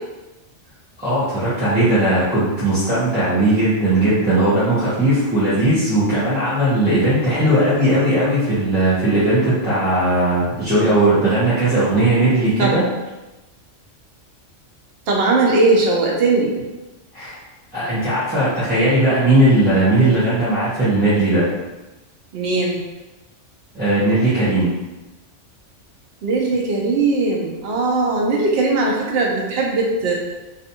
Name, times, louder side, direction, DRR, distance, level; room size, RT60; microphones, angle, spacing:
voice 1, 1.0-12.9 17.1-17.3 17.7-21.5 23.7-24.7, right 1 dB, 10° right, -13 dB, 0.5 m, -18 dB
voice 2, 15.1-16.5 22.3-22.8 26.2-30.1, right 3 dB, 65° right, -1 dB, 0.7 m, -19 dB
2.5 x 2.4 x 2.7 m, 1.1 s
omnidirectional pair, 1.3 m